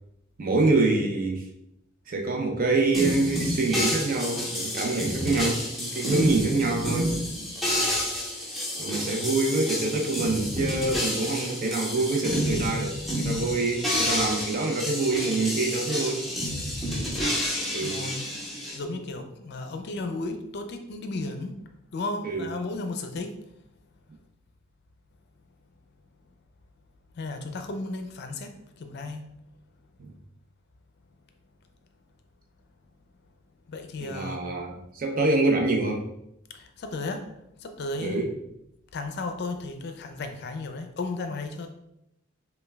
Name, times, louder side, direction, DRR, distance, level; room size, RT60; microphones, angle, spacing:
voice 1, 0.4-1.4 2.1-7.1 8.8-16.3 17.7-18.0 22.2-22.5 30.0-30.1 34.0-36.0 38.0-38.3, right 3 dB, 45° right, 2 dB, 0.6 m, -26 dB
sound 1, 2.9-18.8, equal, ahead, 0.7 m, -29 dB
voice 2, 17.8-18.3 18.7-21.6 21.9-23.4 27.2-29.3 33.7-34.5 36.5-37.3 37.6-38.3 38.9-41.7, left 2 dB, 55° left, 6 dB, 0.4 m, -34 dB
5.4 x 2.2 x 2.2 m, 0.83 s
head